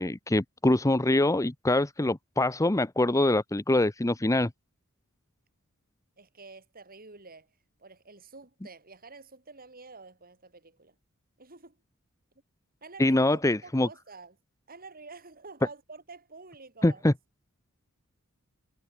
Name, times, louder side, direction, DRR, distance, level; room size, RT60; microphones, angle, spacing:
voice 1, 0.0-4.5 13.0-13.9 16.8-17.1, left 1 dB, 15° left, 0.8 m, -24 dB
voice 2, 6.2-7.5 7.8-11.0 11.4-11.8 12.8-14.4 14.7-17.0, right 3 dB, 45° right, 7.5 m, -48 dB
head